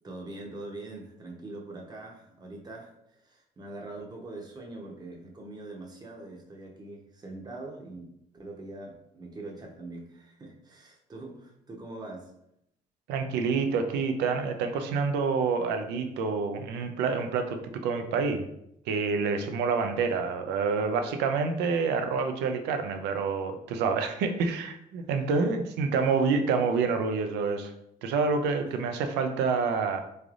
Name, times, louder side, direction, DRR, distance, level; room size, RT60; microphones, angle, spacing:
voice 1, 0.0-8.1 8.4-12.3 25.0-25.1 25.4-25.5 28.7-28.8, right 2 dB, 25° right, 0 dB, 0.8 m, -43 dB
voice 2, 13.1-18.5 18.9-27.7 28.0-30.0, right 5 dB, 90° right, 6 dB, 0.5 m, -27 dB
3.8 x 3.3 x 2.4 m, 0.77 s
cardioid pair, 110°, 17 cm